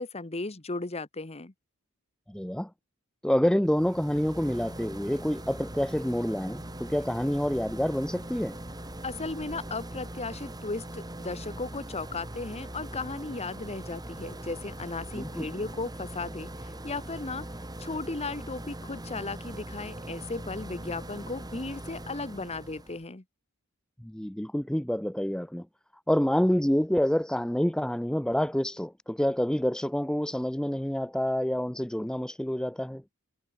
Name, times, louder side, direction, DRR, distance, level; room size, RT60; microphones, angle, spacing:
voice 1, 0.0-1.5 9.0-17.5 17.8-23.2, left 3 dB, 30° left, 1.2 m, -36 dB
voice 2, 2.3-2.7 3.2-8.6 15.2-15.5 24.0-25.7 26.1-33.0, equal, 5° left, 0.5 m, -27 dB
sound 1, 3.6-23.0, right 1 dB, 20° right, 3.4 m, -41 dB
head